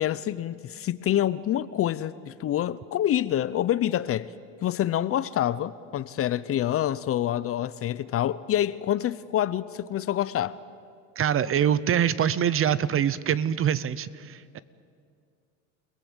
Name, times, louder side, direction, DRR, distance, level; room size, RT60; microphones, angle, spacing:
voice 1, 0.0-4.3 4.6-10.5, left 11 dB, 35° left, 0.6 m, -27 dB
voice 2, 11.2-14.6, right 9 dB, 35° right, 0.8 m, -24 dB
29.0 x 18.5 x 8.0 m
supercardioid pair, 110°, 39 cm